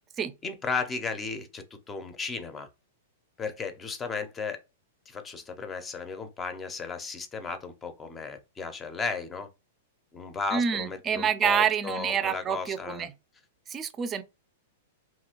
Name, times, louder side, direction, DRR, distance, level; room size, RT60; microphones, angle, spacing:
voice 1, 0.4-2.7 3.4-4.6 5.1-9.5 10.1-13.1, left 4 dB, 20° left, 0.6 m, -35 dB
voice 2, 10.5-13.1 13.7-14.2, right 7 dB, 25° right, 0.4 m, -27 dB
2.9 x 2.4 x 2.8 m
hypercardioid pair, 110°, 0 cm